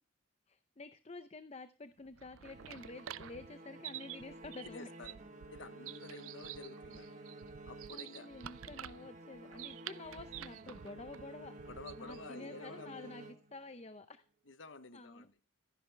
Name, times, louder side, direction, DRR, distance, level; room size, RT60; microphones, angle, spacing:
voice 1, 0.5-4.9 7.0-7.3 7.9-11.5 12.0-14.2 14.9-15.3, left 3 dB, 30° left, 12 dB, 0.6 m, -50 dB
sound 1, 2.1-12.3, right 11 dB, 85° right, 0.5 m, -49 dB
sound 2, 2.4-13.9, right 2 dB, 35° right, 1.5 m, -52 dB
voice 2, 4.6-5.2 5.5-7.2 7.7-8.3 11.7-13.2 14.5-15.3, left 3 dB, 65° left, 13 dB, 1.0 m, -51 dB
14.5 x 10.5 x 3.4 m, 0.34 s
head